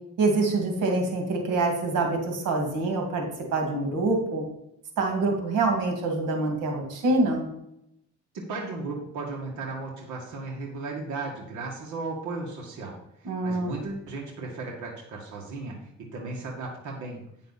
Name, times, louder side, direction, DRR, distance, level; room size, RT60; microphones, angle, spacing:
voice 1, 0.2-3.2 3.5-4.4 5.0-7.5 13.2-13.7, right 2 dB, 90° right, 2 dB, 2.3 m, -25 dB
voice 2, 8.3-17.2, right 3 dB, 75° right, -2 dB, 2.0 m, -35 dB
9.9 x 6.7 x 4.1 m, 0.80 s
cardioid pair, 90°, 30 cm